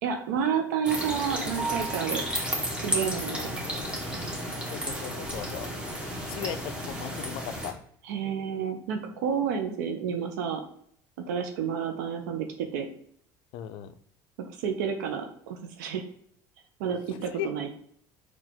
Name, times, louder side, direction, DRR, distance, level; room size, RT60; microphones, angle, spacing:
voice 1, 0.0-2.3 2.8-3.5 8.1-10.6 11.3-12.9 14.6-16.0 16.8-17.7, right 7 dB, 85° right, 4 dB, 0.5 m, -30 dB
sound 1, 0.8-7.7, equal, 10° right, 1.2 m, -33 dB
sound 2, 1.6-2.6, right 5 dB, 65° right, 1.0 m, -36 dB
voice 2, 3.3-3.6 4.6-5.7 6.2-7.8 13.5-13.9 17.1-17.6, left 10 dB, 65° left, 11 dB, 0.4 m, -37 dB
3.8 x 2.4 x 4.4 m, 0.63 s
hypercardioid pair, 80°, 9 cm